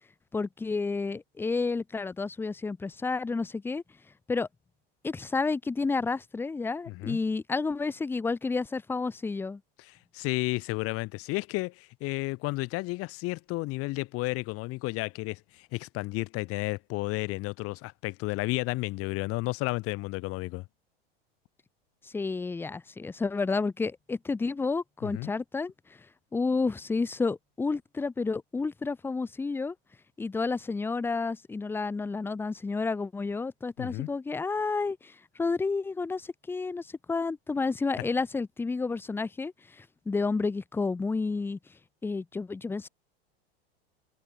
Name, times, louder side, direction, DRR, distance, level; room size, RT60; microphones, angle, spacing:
voice 1, 0.3-3.8 4.3-4.5 5.0-9.6 22.1-25.7 26.3-29.7 30.2-35.1 35.4-39.5 40.1-41.6 42.0-42.9, left 4 dB, 5° left, 0.5 m, -30 dB
voice 2, 6.9-7.2 9.8-20.6 25.0-25.3 33.8-34.1, left 22 dB, 50° left, 2.2 m, -32 dB
hypercardioid pair, 95°, 30 cm